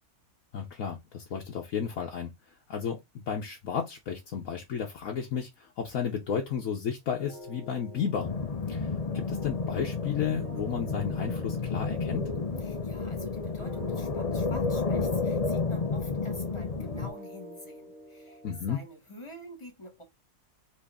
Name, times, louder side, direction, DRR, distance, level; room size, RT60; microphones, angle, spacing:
voice 1, 0.5-2.3 2.7-8.3 8.7-8.9 9.1-12.3 18.4-18.8, left 7 dB, 70° left, 1.2 m, -33 dB
sound 1, 7.2-18.6, equal, 50° right, 1.9 m, -49 dB
sound 2, 8.2-17.1, left 4 dB, 45° left, 0.5 m, -31 dB
voice 2, 12.6-18.4 18.7-20.0, left 1 dB, 20° left, 1.4 m, -47 dB
4.1 x 3.1 x 3.5 m
omnidirectional pair, 1.5 m